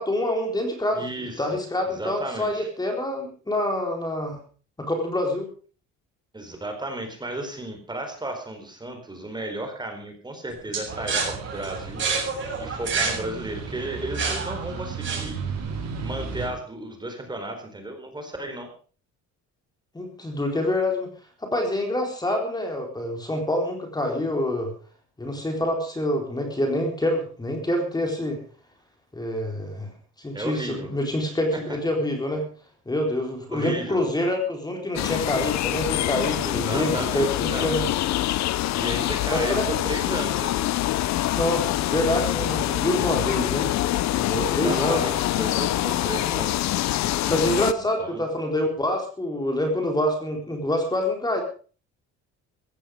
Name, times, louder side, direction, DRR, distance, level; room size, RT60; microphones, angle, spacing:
voice 1, 0.0-4.4 4.8-5.5 19.9-21.1 21.4-24.7 25.2-28.4 29.1-29.9 30.2-32.4 32.9-37.8 39.3-39.6 41.3-43.7 44.1-45.0 47.3-51.4, left 1 dB, 15° left, 3 dB, 4.3 m, -26 dB
voice 2, 0.9-1.5 1.9-2.7 6.3-12.1 12.6-15.4 16.0-18.7 30.3-30.9 31.7-31.8 33.5-34.0 36.4-37.7 38.7-40.6 44.3-46.7 48.0-48.2, right 1 dB, 15° right, 5 dB, 4.3 m, -34 dB
sound 1, 10.7-15.6, right 5 dB, 40° right, 7.5 m, -29 dB
sound 2, 10.9-16.5, right 5 dB, 60° right, 5.8 m, -35 dB
sound 3, 35.0-47.7, left 14 dB, 65° left, 0.8 m, -25 dB
16.0 x 14.5 x 5.1 m, 0.40 s
cardioid pair, 125°, 30 cm